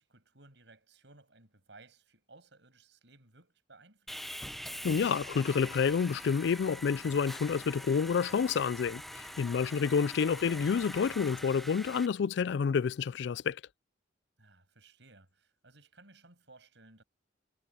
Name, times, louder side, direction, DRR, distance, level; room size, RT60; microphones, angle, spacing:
voice 1, 0.0-4.4 14.4-17.0, right 3 dB, 70° right, 8.0 m, -59 dB
Sawing, 4.1-12.1, equal, ahead, 0.9 m, -44 dB
voice 2, 4.8-13.6, left 6 dB, 65° left, 0.3 m, -29 dB
head